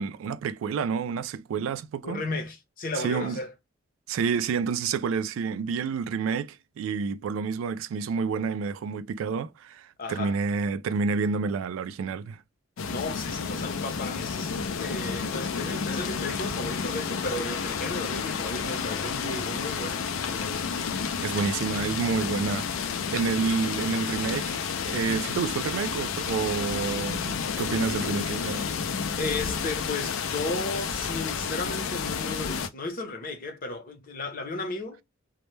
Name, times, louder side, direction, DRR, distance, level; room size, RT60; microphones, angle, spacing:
voice 1, 0.0-2.2 3.0-3.4 4.1-12.4 21.2-22.7 23.1-28.7, right 5 dB, 90° right, 0.3 m, -29 dB
voice 2, 2.0-3.5 10.0-10.4 12.9-20.6 29.2-35.0, left 2 dB, 45° left, 0.7 m, -34 dB
sound 1, 12.8-32.7, left 6 dB, 80° left, 0.4 m, -31 dB
2.1 x 2.0 x 3.0 m
head